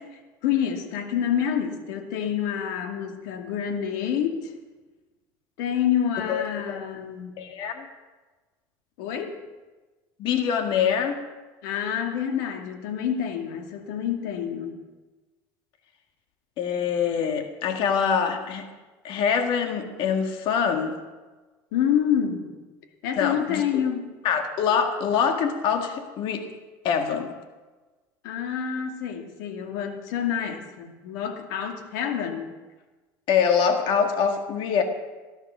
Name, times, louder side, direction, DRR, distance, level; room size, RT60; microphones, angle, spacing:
voice 1, 0.4-4.5 5.6-7.4 9.0-9.3 11.6-14.8 21.7-22.5 23.0-24.1 28.2-32.5, left 9 dB, 90° left, 4 dB, 2.3 m, -27 dB
voice 2, 6.3-6.8 7.4-7.9 10.2-11.2 16.6-18.7 19.0-21.0 23.2-23.8 24.2-26.5 26.8-27.3 33.3-34.8, left 7 dB, 60° left, 5 dB, 1.9 m, -24 dB
18.5 x 11.5 x 6.3 m, 1.3 s
cardioid pair, 125°, 10 cm